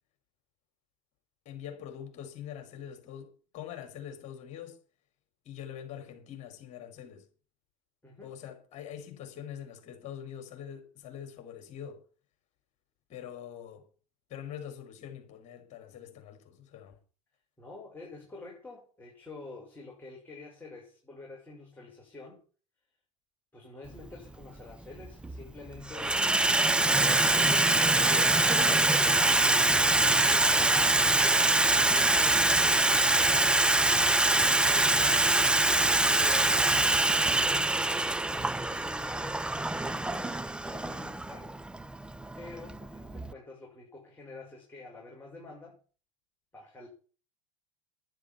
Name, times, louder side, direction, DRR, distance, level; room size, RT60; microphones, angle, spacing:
voice 1, 1.4-4.8 5.4-7.3 8.2-12.0 13.1-13.8 14.3-17.0 28.5-28.8, left 9 dB, 40° left, 5.0 m, -44 dB
voice 2, 8.0-8.4 17.6-22.4 23.5-27.3 27.9-35.3 36.0-36.9 37.2-41.6 42.4-45.8 46.5-46.9, left 3 dB, 10° left, 6.0 m, -48 dB
Water tap faucet / Sink (filling or washing), 24.0-24.1 25.0-25.4 25.7-43.3, right 2 dB, 5° right, 0.6 m, -24 dB
10.5 x 10.0 x 7.0 m
hypercardioid pair, 80°, 17 cm